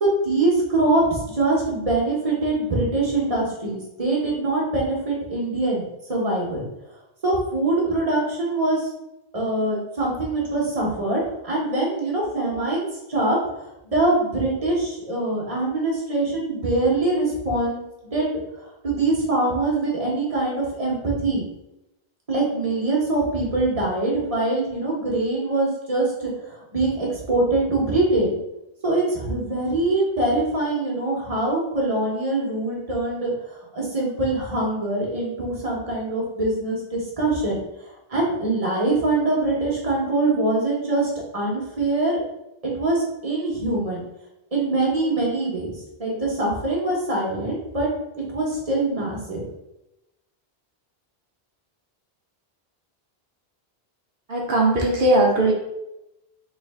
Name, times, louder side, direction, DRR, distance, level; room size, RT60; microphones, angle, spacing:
voice 1, 0.0-5.8 6.1-6.6 7.2-8.8 9.3-13.4 13.8-17.8 18.1-18.3 18.8-21.4 22.3-28.3 28.8-33.3 33.7-37.6 38.1-42.2 42.7-44.0 44.5-45.7 46.0-47.9 48.1-49.4, right 2 dB, 35° right, -3 dB, 1.2 m, -23 dB
voice 2, 54.3-55.5, right 1 dB, 60° right, -1 dB, 0.9 m, -19 dB
3.6 x 3.2 x 3.6 m, 0.90 s
omnidirectional pair, 1.0 m